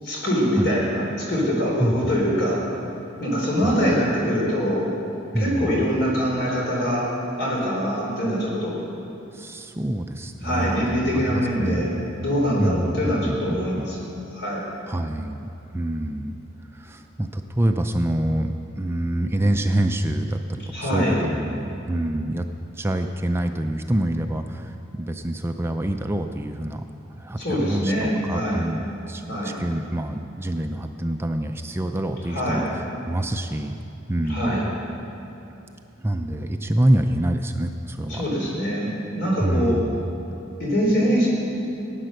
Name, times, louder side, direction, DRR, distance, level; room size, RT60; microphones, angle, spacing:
voice 1, 0.0-2.6 3.2-4.9 5.3-7.1 7.4-8.8 10.4-11.9 12.2-14.1 14.3-14.6 20.7-21.2 27.4-28.6 29.3-29.6 32.3-32.7 34.3-34.7 38.1-39.8 40.6-41.3, equal, 60° left, -3 dB, 3.8 m, -23 dB
voice 2, 5.3-5.9 9.3-12.0 12.6-13.9 14.9-16.4 16.7-22.5 22.7-26.8 27.2-34.7 36.0-38.2 39.4-40.1, right 1 dB, 15° right, 5 dB, 0.4 m, -26 dB
16.0 x 9.1 x 6.5 m, 2.8 s
head